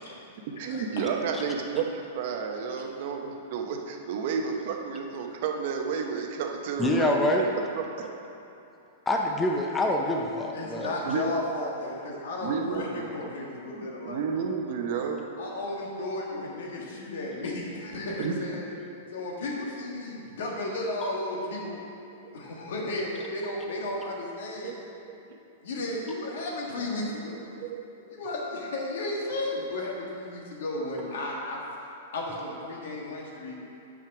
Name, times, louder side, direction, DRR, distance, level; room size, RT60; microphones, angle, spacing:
voice 1, 0.5-7.1 7.8-8.1 11.0-11.3 12.4-13.1 13.7-15.3 18.2-18.4 22.2-22.3 24.6-24.8 25.1-25.2 27.6-28.1, right 6 dB, 55° right, 3 dB, 0.8 m, -31 dB
voice 2, 6.8-7.5 9.1-10.9, left 1 dB, 10° left, 1 dB, 0.5 m, -25 dB
voice 3, 10.5-14.5 15.4-18.7 19.1-21.8 22.3-24.7 25.6-27.4 28.1-31.6 32.1-33.5, left 2 dB, 75° left, -2 dB, 1.6 m, -34 dB
6.0 x 5.3 x 5.8 m, 2.7 s
hypercardioid pair, 145°, 0 cm